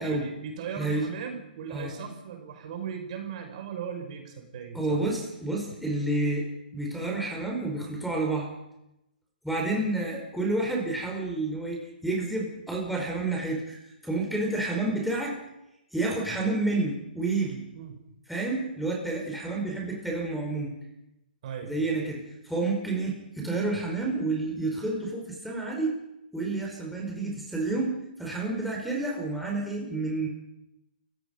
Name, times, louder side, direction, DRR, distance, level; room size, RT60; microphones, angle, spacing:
voice 1, 0.0-5.0 17.7-18.0 21.4-21.8, right 7 dB, 45° right, 4 dB, 5.6 m, -38 dB
voice 2, 4.7-6.5 6.7-8.5 9.4-15.4 15.9-17.6 18.3-20.7 21.6-26.0 26.3-30.3, right 2 dB, ahead, -3 dB, 4.9 m, -29 dB
29.5 x 16.5 x 5.5 m, 0.87 s
hypercardioid pair, 135°, 5 cm